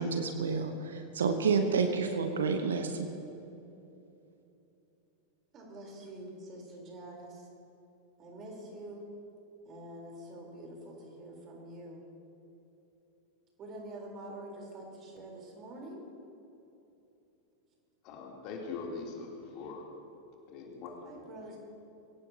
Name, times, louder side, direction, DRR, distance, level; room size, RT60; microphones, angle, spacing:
voice 1, 0.0-3.1, right 5 dB, 65° right, 7 dB, 1.0 m, -29 dB
voice 2, 5.5-7.5 8.2-9.1 9.6-12.0 13.6-16.0 21.0-21.6, right 1 dB, 30° right, -1 dB, 3.9 m, -46 dB
voice 3, 18.0-19.8 20.5-21.4, left 4 dB, 40° left, -1 dB, 3.2 m, -42 dB
23.0 x 17.0 x 2.9 m, 2.9 s
figure-of-eight pair, 90°, 0 cm